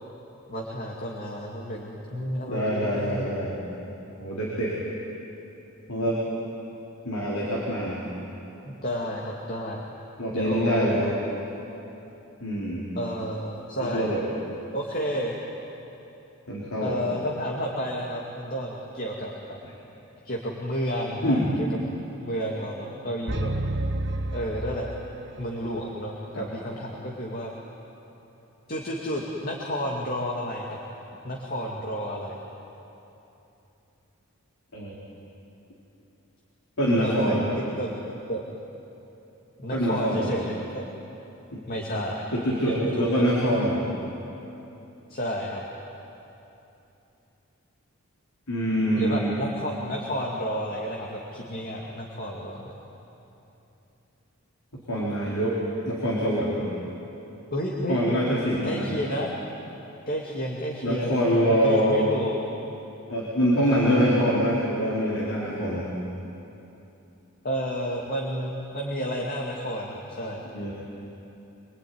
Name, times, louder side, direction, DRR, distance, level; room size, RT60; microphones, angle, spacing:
voice 1, 0.5-3.3 8.6-9.8 10.3-10.9 12.9-14.1 14.7-15.4 16.8-19.6 20.2-21.4 22.2-23.5 24.3-24.9 25.4-27.5 28.7-30.8 31.2-32.4 36.8-37.4 37.8-38.4 39.6-40.9 41.7-42.3 42.7-43.1 45.1-45.6 49.0-52.7 57.5-58.0 58.6-59.3 60.1-61.2 61.5-62.3 63.7-64.3 67.4-70.4, equal, 45° left, -1 dB, 2.3 m, -31 dB
voice 2, 2.5-3.5 4.2-4.8 5.9-6.2 7.0-8.0 10.2-11.2 12.4-12.9 13.9-14.2 16.5-16.9 21.2-21.5 26.3-26.5 34.7-34.9 36.8-37.6 39.7-40.3 41.5-41.6 41.9-42.0 42.3-43.9 48.5-49.3 54.9-55.6 55.9-56.7 57.9-59.0 60.8-62.1 63.1-65.9 70.5-70.7, equal, 85° left, -5 dB, 4.4 m, -25 dB
sound 1, 23.3-25.4, right 1 dB, 55° right, 1.5 m, -30 dB
26.5 x 21.0 x 9.6 m, 3.0 s
head